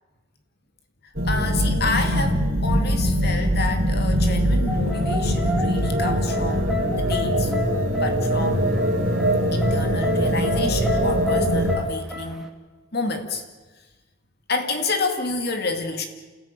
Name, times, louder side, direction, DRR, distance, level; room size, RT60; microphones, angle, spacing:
sound 1, 1.1-11.8, equal, 50° right, 4.3 m, -22 dB
voice 1, 1.2-7.5 7.9-8.6 9.5-12.5 12.9-13.4 14.5-16.1, left 3 dB, 50° left, 5 dB, 2.3 m, -29 dB
sound 2, 4.7-12.5, left 3 dB, ahead, 2.3 m, -30 dB
29.0 x 15.5 x 8.9 m, 1.3 s
head